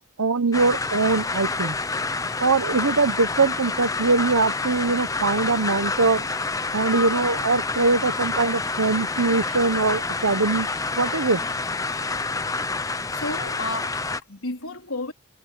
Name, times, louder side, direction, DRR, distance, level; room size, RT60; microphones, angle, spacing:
voice 1, 0.0-1.7 2.4-6.2 6.7-10.7 11.0-11.4, right 3 dB, 85° right, 1.1 m, -22 dB
sound 1, 0.5-14.2, left 3 dB, 15° left, 0.7 m, -28 dB
voice 2, 13.1-15.1, left 2 dB, 80° left, 4.1 m, -32 dB
head